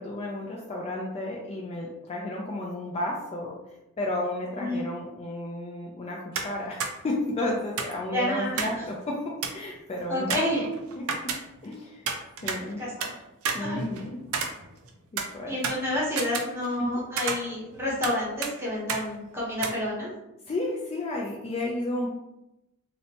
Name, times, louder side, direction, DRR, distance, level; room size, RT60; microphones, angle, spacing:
voice 1, 0.0-3.6 4.0-10.4 11.0-11.3 11.6-12.0 12.4-12.8 13.5-14.2 15.1-15.6 16.8-17.0 20.5-22.1, left 1 dB, 30° left, -2 dB, 0.3 m, -32 dB
sound 1, 6.3-6.5 6.8-6.9 7.8-8.8 9.1-9.2 9.4-9.7 10.3-11.7 12.1-13.1 13.4-14.9 15.2-16.9 17.2-18.2 18.4-18.5 18.9-19.1 19.6-19.7, right 5 dB, 80° right, 0.4 m, -31 dB
voice 2, 8.1-8.7 10.1-10.6 12.8-13.1 13.6-13.8 15.5-20.1, left 1 dB, 10° right, -6 dB, 0.9 m, -29 dB
2.8 x 2.1 x 2.8 m, 0.93 s
head